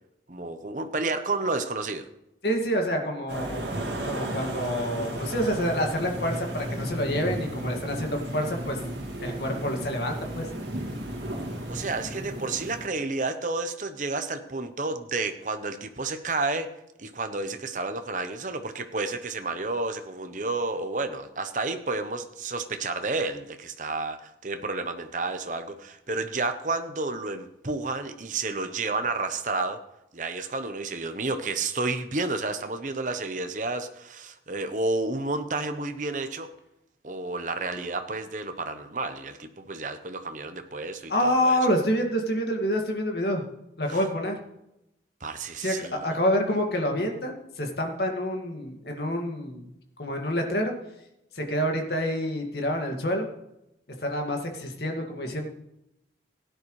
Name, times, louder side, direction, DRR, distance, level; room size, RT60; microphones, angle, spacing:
voice 1, 0.3-2.1 11.7-16.7 17.0-29.8 30.1-36.5 37.0-41.6 45.2-46.0, right 3 dB, 45° right, 8 dB, 0.9 m, -31 dB
voice 2, 2.4-3.7 4.0-8.8 9.2-10.5 41.1-43.4 43.8-44.4 45.6-49.7 50.0-50.7 51.3-53.3 54.0-55.5, equal, 65° left, 2 dB, 2.1 m, -27 dB
sound 1, 3.3-12.9, right 1 dB, 80° right, 2.2 m, -34 dB
16.5 x 10.0 x 3.2 m, 0.85 s
head